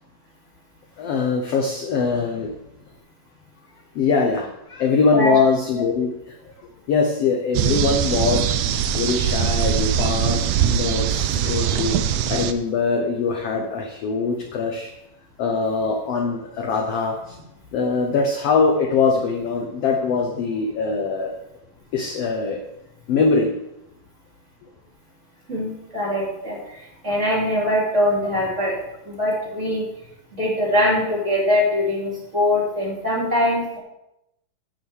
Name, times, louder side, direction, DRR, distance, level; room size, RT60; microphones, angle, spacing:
voice 1, 1.0-2.6 3.9-6.4 6.9-8.5 8.9-12.0 12.3-14.9 15.4-17.4 17.7-21.3 21.9-22.6 23.1-23.5, left 4 dB, 70° left, 3 dB, 1.4 m, -22 dB
sound 1, 7.5-12.5, right 9 dB, 75° right, 2.0 m, -22 dB
voice 2, 25.5-26.8 27.0-28.8 29.0-29.8 30.3-33.8, left 1 dB, 20° right, -5 dB, 3.6 m, -22 dB
9.6 x 6.5 x 8.1 m, 0.87 s
omnidirectional pair, 4.0 m